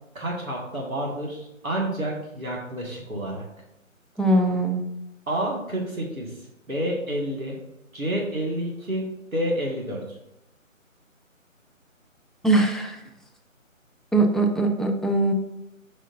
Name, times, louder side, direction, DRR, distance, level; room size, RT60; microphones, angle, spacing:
voice 1, 0.1-3.4 5.3-6.3 6.7-7.6 7.9-9.1 9.3-10.0, right 1 dB, 80° right, -2 dB, 2.1 m, -29 dB
voice 2, 4.2-4.8 12.4-13.0 14.1-15.3, right 2 dB, ahead, 1 dB, 0.3 m, -21 dB
7.7 x 5.0 x 2.6 m, 0.85 s
figure-of-eight pair, 155°, 41 cm